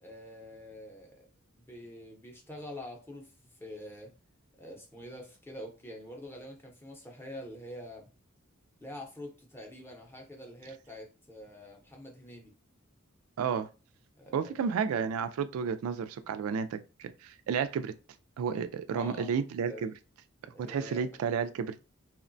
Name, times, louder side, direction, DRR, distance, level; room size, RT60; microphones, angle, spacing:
voice 1, 0.0-1.2 1.5-4.1 4.6-8.1 8.8-12.5 14.1-14.7 18.9-19.3 19.7-19.9 20.5-21.0, left 1 dB, 10° left, 0.6 m, -46 dB
voice 2, 13.4-13.7 14.3-17.9 18.4-19.9 20.6-21.8, right 6 dB, 85° right, 0.3 m, -32 dB
2.9 x 2.1 x 2.5 m
head